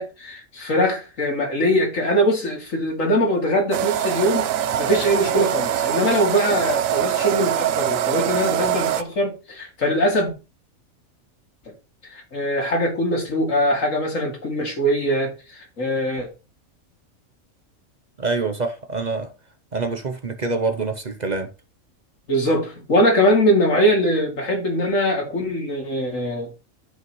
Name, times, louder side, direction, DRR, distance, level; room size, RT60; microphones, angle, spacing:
voice 1, 0.0-4.5 4.8-10.3 12.1-15.3 15.8-16.3 22.3-26.5, equal, 65° left, 3.0 m, -21 dB
sound 1, 3.7-9.0, right 10 dB, 75° right, 1.0 m, -23 dB
voice 2, 18.2-19.3 19.7-21.5, right 3 dB, 40° right, 0.7 m, -25 dB
12.5 x 5.3 x 3.1 m
omnidirectional pair, 1.5 m